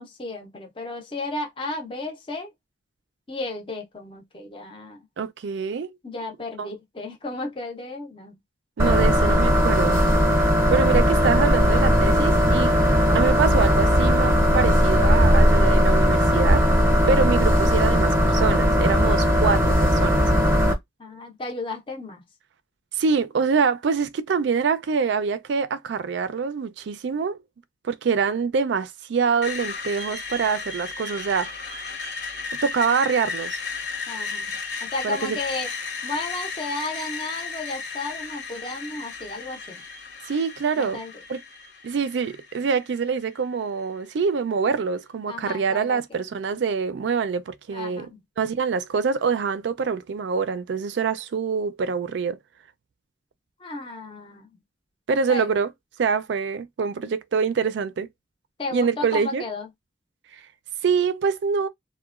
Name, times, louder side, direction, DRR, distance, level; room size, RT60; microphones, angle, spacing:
voice 1, 0.0-2.5 3.3-5.0 6.0-8.4 21.0-22.2 34.1-34.5 34.8-35.7 36.0-39.8 40.8-41.1 45.3-46.0 47.7-48.1 53.6-54.5 55.3-55.5 58.6-59.7, left 2 dB, 25° left, 0.5 m, -33 dB
voice 2, 5.2-6.0 6.6-6.7 8.8-10.0 10.7-12.7 13.1-16.7 17.1-20.3 22.9-27.4 27.8-31.5 32.6-33.6 35.0-35.4 40.3-41.0 41.3-41.4 41.8-48.1 48.4-52.4 55.1-55.7 56.0-58.1 58.7-59.4 60.8-61.7, right 5 dB, 65° right, 0.4 m, -25 dB
sound 1, 8.8-20.7, equal, 15° right, 0.6 m, -18 dB
Screech, 29.4-43.4, left 4 dB, 60° left, 0.8 m, -34 dB
2.9 x 2.1 x 2.3 m
head